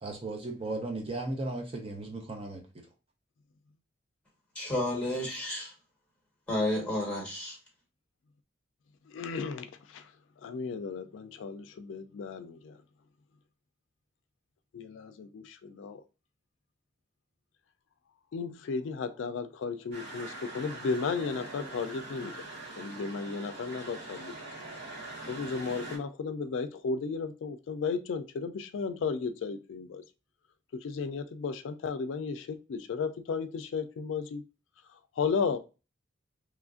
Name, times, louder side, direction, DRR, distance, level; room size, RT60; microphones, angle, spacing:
voice 1, 0.0-2.9, right 2 dB, 30° right, 0.5 m, -36 dB
voice 2, 4.5-5.7 6.5-7.6, left 1 dB, 5° left, 1.3 m, -31 dB
voice 3, 9.1-10.1 10.4-12.8 14.7-16.0 18.3-22.3 22.8-24.3 25.3-30.0 30.7-34.4 35.2-35.6, left 5 dB, 80° left, 0.3 m, -34 dB
sound 1, 19.9-26.0, right 2 dB, 65° right, 1.4 m, -43 dB
3.0 x 2.4 x 2.4 m
head